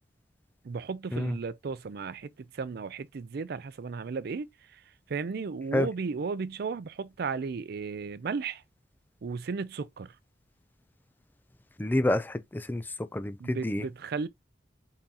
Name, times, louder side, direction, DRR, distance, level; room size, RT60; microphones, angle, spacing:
voice 1, 0.6-4.5 5.1-8.6 9.2-10.1 13.4-14.3, right 5 dB, 55° right, 0.4 m, -34 dB
voice 2, 11.8-12.8 13.1-13.8, left 1 dB, 10° left, 0.3 m, -28 dB
3.9 x 3.8 x 2.8 m
head